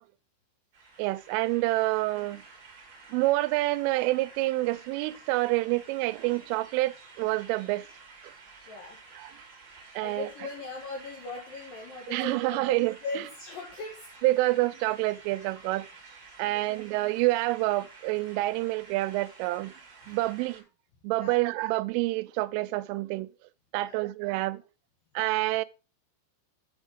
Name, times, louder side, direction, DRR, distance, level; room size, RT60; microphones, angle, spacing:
sound 1, 0.7-20.6, right 4 dB, 50° right, 1.3 m, -51 dB
voice 1, 1.0-2.4 3.1-7.9 10.0-10.3 12.1-12.9 14.2-15.9 16.4-19.7 20.1-20.6 21.0-23.3 23.7-24.6 25.2-25.7, right 19 dB, 85° right, 3.1 m, -27 dB
voice 2, 8.7-9.0 10.0-14.2 16.4-16.8 21.1-21.4 23.8-24.0, left 3 dB, 70° left, 2.1 m, -39 dB
7.2 x 6.1 x 5.1 m
omnidirectional pair, 5.6 m